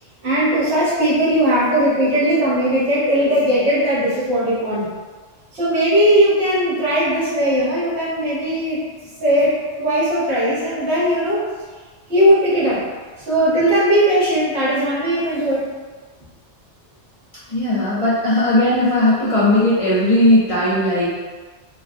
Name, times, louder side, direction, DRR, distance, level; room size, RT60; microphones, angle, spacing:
voice 1, 0.2-4.9 5.5-8.8 9.2-11.4 12.1-12.8 13.2-15.7, right 1 dB, 70° right, -9 dB, 1.4 m, -18 dB
voice 2, 17.5-21.1, left 1 dB, 40° left, -9 dB, 0.5 m, -17 dB
3.3 x 2.3 x 2.5 m, 1.4 s
omnidirectional pair, 1.2 m